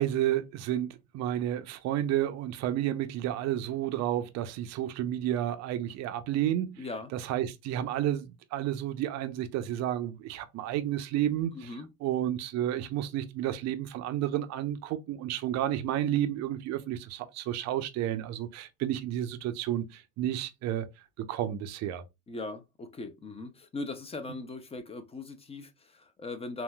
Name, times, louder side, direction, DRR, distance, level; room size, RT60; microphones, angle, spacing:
voice 1, 0.0-6.8 7.1-11.7 12.0-20.9 21.3-22.0, right 12 dB, 45° right, 0.5 m, -31 dB
voice 2, 6.8-7.1 11.5-11.9 22.3-26.6, left 2 dB, 15° left, 0.4 m, -39 dB
3.7 x 2.2 x 2.2 m
supercardioid pair, 95°, 40 cm